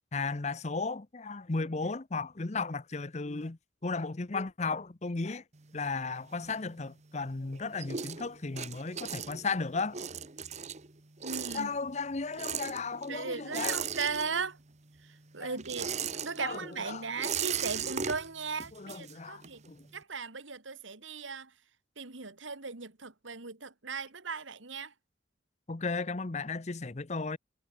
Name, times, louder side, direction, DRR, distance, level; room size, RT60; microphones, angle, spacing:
voice 1, 0.1-5.4 5.7-10.0 11.5-13.8 15.4-15.6 16.4-17.1 18.7-19.9 25.7-27.4, left 4 dB, 35° left, 0.8 m, -35 dB
sound 1, 5.5-7.2 7.5-14.7 15.0-19.7, right 7 dB, 35° right, 1.3 m, -38 dB
voice 2, 11.2-11.7 13.1-14.6 15.3-15.9 16.2-19.6 19.9-21.5 22.0-24.9, right 5 dB, 85° right, 2.2 m, -37 dB
head